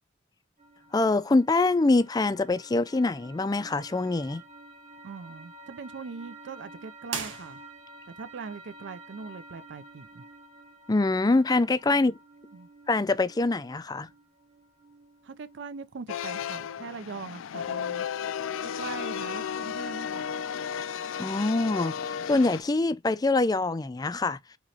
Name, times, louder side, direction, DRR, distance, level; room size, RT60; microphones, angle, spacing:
sound 1, 0.6-15.9, right 1 dB, 35° right, 1.2 m, -51 dB
voice 1, 0.9-4.4 10.9-12.2 12.9-14.1 21.2-24.4, left 2 dB, 20° left, 0.4 m, -24 dB
voice 2, 5.0-7.6 8.2-10.3 11.9-12.0 12.5-12.7 15.2-18.1 18.6-20.3, right 5 dB, 60° right, 0.4 m, -41 dB
sound 2, 7.0-8.1, right 6 dB, 80° right, 1.4 m, -37 dB
sound 3, 16.1-22.6, left 8 dB, 90° left, 0.4 m, -34 dB
6.0 x 2.9 x 2.7 m
head